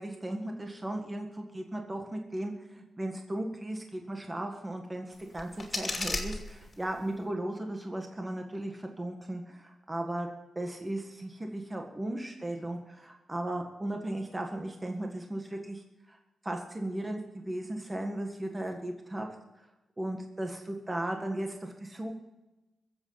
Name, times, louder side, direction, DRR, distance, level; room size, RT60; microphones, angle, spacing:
voice 1, 0.0-10.3 10.6-15.8 16.1-16.2 16.4-19.3 20.0-22.1, right 1 dB, 15° right, 2 dB, 1.6 m, -36 dB
sound 1, 5.1-7.1, left 2 dB, 30° left, 2.8 m, -36 dB
22.5 x 7.8 x 5.8 m, 1.0 s
wide cardioid pair, 110°, 0 cm